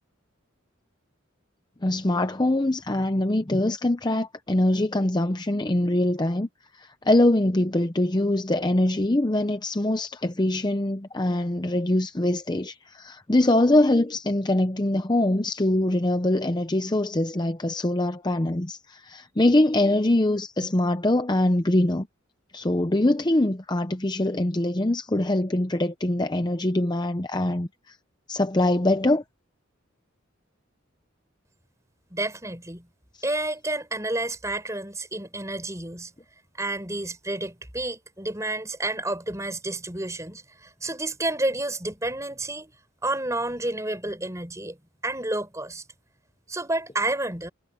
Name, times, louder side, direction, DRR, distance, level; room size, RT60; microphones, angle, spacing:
voice 1, 1.8-6.5 6.7-22.1 22.5-28.0 28.3-29.2, left 1 dB, 20° left, 0.7 m, -23 dB
voice 2, 32.1-32.9 33.2-36.1 36.6-42.7 43.0-44.8 45.0-45.8 46.5-47.5, right 2 dB, 15° right, 5.0 m, -30 dB
head